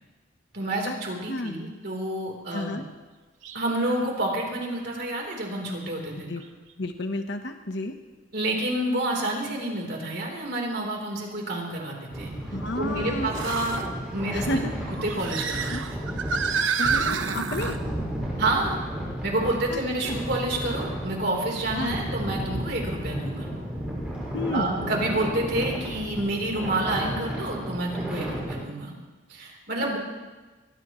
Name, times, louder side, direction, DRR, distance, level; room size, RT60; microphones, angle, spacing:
voice 1, 0.5-2.8 3.5-6.3 8.3-12.3 12.8-13.8 14.1-15.7 18.4-18.8 19.2-23.5 24.5-28.9 29.3-30.0, right 1 dB, 50° right, 0 dB, 3.8 m, -29 dB
voice 2, 2.5-2.8 6.3-6.4 6.8-7.9 12.5-13.3 14.3-14.7 15.6-15.8 16.8-17.8 19.7-20.2 21.7-22.0 24.3-24.7, left 1 dB, 60° left, 6 dB, 1.0 m, -31 dB
sound 1, 3.4-3.6 4.2-4.3 6.4-6.5 10.0-10.1 13.3-13.9 14.8-17.8, right 5 dB, 75° right, 1.1 m, -29 dB
sound 2, 12.1-28.5, right 1 dB, 5° right, 5.6 m, -33 dB
22.0 x 20.5 x 3.1 m, 1.3 s
head